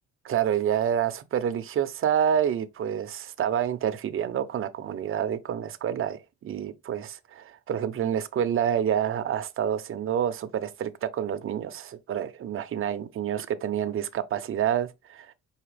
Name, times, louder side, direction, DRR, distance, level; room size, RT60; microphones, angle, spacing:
voice 1, 0.2-15.3, right 9 dB, 45° right, 0.6 m, -28 dB
4.8 x 2.8 x 3.2 m
cardioid pair, 90°, 30 cm